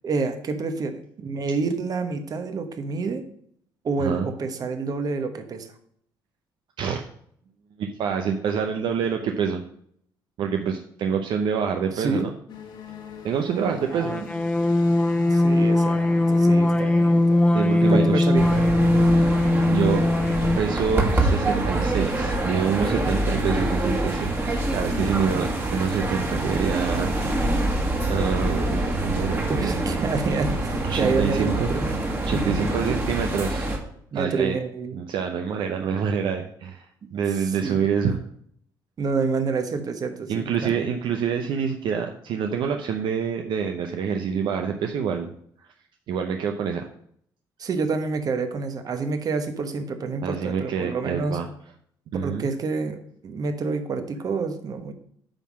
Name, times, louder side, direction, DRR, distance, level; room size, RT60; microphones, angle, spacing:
voice 1, 0.0-3.2 3.8-5.7 11.9-12.3 13.9-14.1 15.2-17.5 17.8-18.7 25.3-25.5 29.5-31.9 32.3-32.7 34.1-35.0 37.4-37.9 39.0-40.9 47.6-51.4 52.2-54.9, right 4 dB, 45° right, 8 dB, 1.2 m, -28 dB
voice 2, 7.8-9.6 10.4-12.3 13.2-14.3 17.5-18.3 19.1-19.3 19.7-20.0 20.6-27.6 28.1-30.1 30.9-31.7 32.3-33.7 34.1-34.6 34.9-38.2 40.3-45.3 46.1-46.9 50.2-51.4 52.1-52.5, right 6 dB, 70° right, 4 dB, 0.7 m, -26 dB
sound 1, 12.5-22.7, left 6 dB, 65° left, 1.7 m, -45 dB
sound 2, 13.9-20.8, left 1 dB, 15° left, 0.6 m, -20 dB
sound 3, 18.4-33.8, right 2 dB, 25° right, 1.9 m, -25 dB
8.9 x 3.7 x 6.1 m, 0.66 s
cardioid pair, 90°, 8 cm